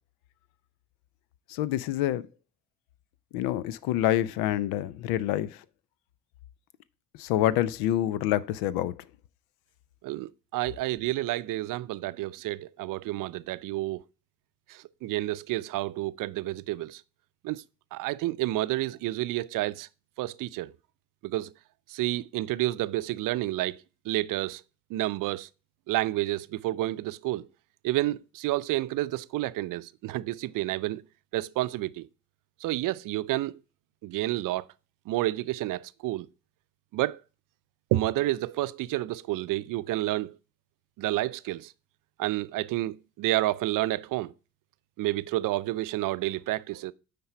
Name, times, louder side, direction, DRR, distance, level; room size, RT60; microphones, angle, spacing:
voice 1, 1.5-2.2 3.3-5.6 7.2-8.9, left 13 dB, 70° left, 0.7 m, -27 dB
voice 2, 10.0-14.0 14.7-17.0 17.4-17.6 17.9-19.9 20.2-20.7 21.2-21.5 21.9-23.8 24.0-24.6 24.9-25.5 25.9-27.5 27.8-31.0 31.3-32.1 32.6-33.6 34.0-34.7 35.1-36.3 36.9-37.2 37.9-40.4 41.0-41.7 42.2-44.3 45.0-46.9, right 16 dB, 60° right, 0.5 m, -30 dB
9.4 x 3.7 x 5.5 m
hypercardioid pair, 55°, 37 cm